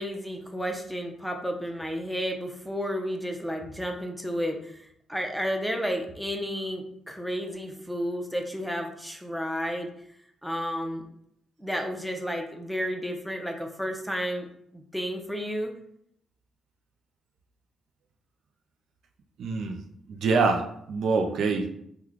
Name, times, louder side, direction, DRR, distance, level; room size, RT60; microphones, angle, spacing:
voice 1, 0.0-4.8 5.1-9.9 10.4-11.0 11.6-14.5 14.7-15.7, equal, ahead, 3 dB, 0.6 m, -32 dB
voice 2, 19.4-19.8 20.1-21.7, right 4 dB, 70° right, 4 dB, 0.4 m, -25 dB
3.0 x 2.2 x 3.7 m, 0.71 s
supercardioid pair, 60°, 0 cm